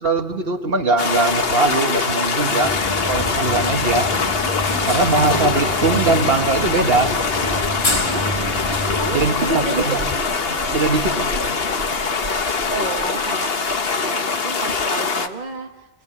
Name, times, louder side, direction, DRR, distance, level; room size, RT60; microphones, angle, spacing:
voice 1, 0.0-2.8 3.1-4.1 4.9-7.1 9.1-9.9 10.7-11.3, right 3 dB, 60° right, 5 dB, 1.7 m, -20 dB
sound 1, 1.0-15.3, left 4 dB, 60° left, 1.3 m, -23 dB
sound 2, 2.6-9.3, left 1 dB, 25° left, 1.3 m, -27 dB
sound 3, 5.2-13.9, right 2 dB, 85° right, 3.1 m, -36 dB
voice 2, 5.3-5.7 8.1-8.3 9.0-10.2 12.2-12.4 12.7-13.5 14.0-15.7, right 3 dB, 40° right, 3 dB, 1.3 m, -30 dB
27.5 x 21.0 x 8.5 m, 1.2 s
omnidirectional pair, 1.2 m